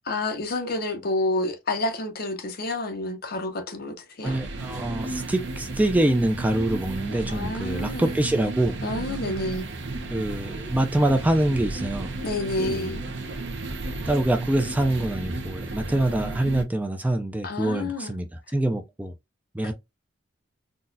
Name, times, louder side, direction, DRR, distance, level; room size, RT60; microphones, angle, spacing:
voice 1, 0.0-4.4 7.3-8.2 8.8-9.7 12.2-13.0 17.4-18.1, left 2 dB, 50° left, 0.8 m, -29 dB
voice 2, 4.2-8.8 10.1-12.1 12.6-13.0 14.1-18.3 18.5-19.1 19.5-19.7, right 1 dB, 10° right, 0.4 m, -25 dB
sound 1, 4.2-16.6, right 2 dB, 60° right, 0.7 m, -33 dB
3.9 x 2.3 x 2.6 m
head